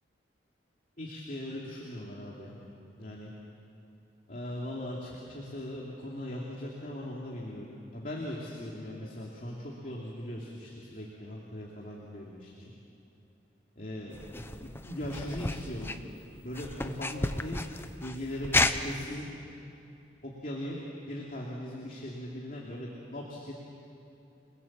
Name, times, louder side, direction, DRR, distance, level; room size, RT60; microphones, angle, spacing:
voice 1, 1.0-2.6 3.0-3.3 4.3-12.7 13.8-15.9 16.4-17.6 18.0-19.3 20.2-20.8 21.1-23.5, left 1 dB, 50° left, -3 dB, 2.7 m, -39 dB
sound 1, 14.1-19.1, left 2 dB, 10° left, 0.7 m, -32 dB
29.0 x 21.0 x 7.5 m, 2.8 s
head